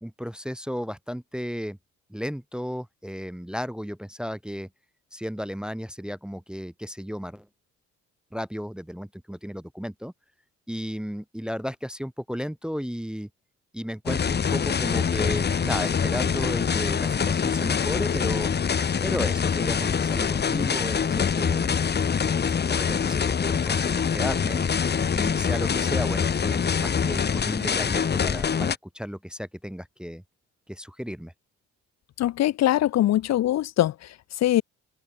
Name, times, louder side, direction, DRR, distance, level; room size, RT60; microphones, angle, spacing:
voice 1, 0.0-1.8 2.1-4.7 5.1-7.5 8.3-10.1 10.7-13.3 13.7-18.5 19.0-21.8 22.6-24.6 25.1-30.2 30.7-31.3, equal, 5° right, 0.6 m, -34 dB
sound 1, 14.1-28.8, left 6 dB, 35° left, 1.1 m, -25 dB
voice 2, 32.2-34.6, left 13 dB, 60° left, 0.6 m, -23 dB
open air
cardioid pair, 90°, 30 cm